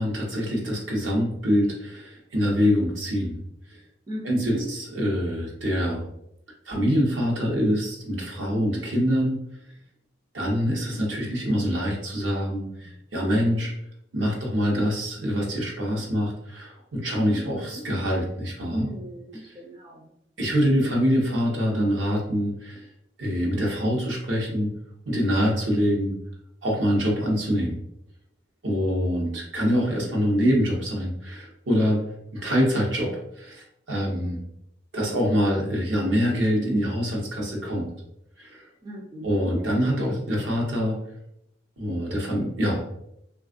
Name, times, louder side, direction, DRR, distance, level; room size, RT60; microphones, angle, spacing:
voice 1, 0.0-3.4 3.7-3.8 4.2-6.1 6.7-9.4 10.3-13.7 14.1-18.8 19.4-19.5 20.4-22.9 23.2-24.7 25.0-26.1 26.6-27.8 28.6-32.0 32.3-34.4 34.9-37.9 38.4-38.6 39.2-41.0 41.8-42.8, equal, 70° right, -2 dB, 0.9 m, -25 dB
voice 2, 4.1-4.7 18.7-20.1 38.8-39.6, equal, 20° right, -3 dB, 0.4 m, -36 dB
3.4 x 2.3 x 2.4 m, 0.78 s
head